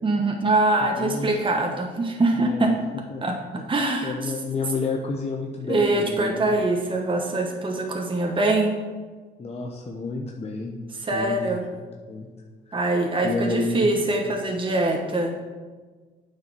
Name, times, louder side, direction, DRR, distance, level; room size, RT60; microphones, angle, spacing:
voice 1, 0.0-2.7 3.2-3.4 3.7-4.3 5.7-8.7 10.9-11.6 12.7-15.3, right 2 dB, 25° right, 2 dB, 1.1 m, -23 dB
voice 2, 1.0-1.3 2.4-2.6 3.1-3.2 4.0-6.5 9.4-10.8 11.1-11.4 11.7-11.8 12.1-12.3 12.7-12.8 13.2-13.9, left 3 dB, 30° left, 0 dB, 0.9 m, -30 dB
9.1 x 4.8 x 6.2 m, 1.4 s
cardioid pair, 90°, 20 cm